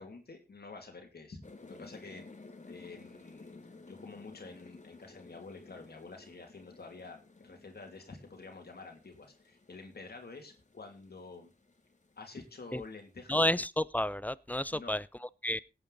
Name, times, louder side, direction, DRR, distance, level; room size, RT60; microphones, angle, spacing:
voice 1, 0.0-2.3 2.7-3.5 3.9-11.5 12.2-13.4 14.7-15.0, left 3 dB, 75° left, 2.6 m, -49 dB
sound 1, 1.4-13.3, left 3 dB, 45° left, 2.0 m, -55 dB
voice 2, 13.3-15.6, left 1 dB, 10° left, 0.6 m, -31 dB
17.5 x 8.7 x 4.0 m
wide cardioid pair, 55°, 17 cm